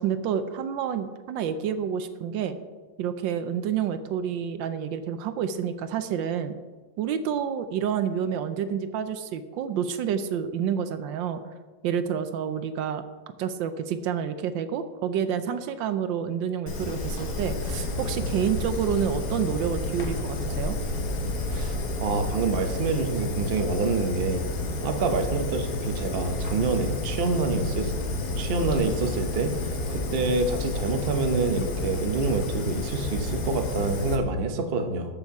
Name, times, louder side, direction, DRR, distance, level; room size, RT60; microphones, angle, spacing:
voice 1, 0.0-2.6 3.0-6.5 7.0-11.4 11.8-13.0 13.4-20.8, right 8 dB, 75° right, 10 dB, 1.3 m, -29 dB
Fire, 16.7-34.2, left 2 dB, 50° left, 1.5 m, -30 dB
voice 2, 22.0-24.4 24.8-27.9 28.4-29.5 29.9-35.1, right 3 dB, 50° right, 6 dB, 0.7 m, -27 dB
13.5 x 5.5 x 4.7 m, 1.4 s
omnidirectional pair, 2.2 m